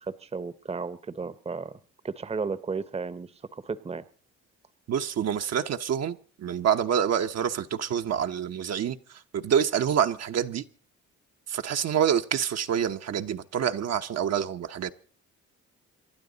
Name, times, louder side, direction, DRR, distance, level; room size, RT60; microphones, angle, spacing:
voice 1, 0.0-1.8 2.0-4.0, right 4 dB, 20° right, 0.8 m, -34 dB
voice 2, 4.9-10.6 11.5-14.9, right 8 dB, 55° right, 0.9 m, -27 dB
28.0 x 12.0 x 3.9 m
cardioid pair, 90°, 30 cm